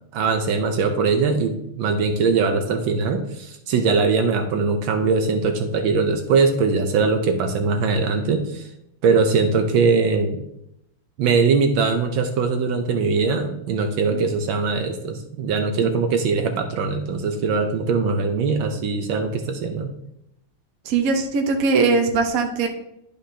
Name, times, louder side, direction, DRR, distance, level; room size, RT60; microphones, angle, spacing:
voice 1, 0.1-8.7 9.0-10.4 11.2-19.9, right 4 dB, 70° right, 5 dB, 1.4 m, -21 dB
voice 2, 20.8-22.7, right 4 dB, 55° right, 4 dB, 1.1 m, -20 dB
11.0 x 5.1 x 2.8 m, 0.79 s
omnidirectional pair, 2.4 m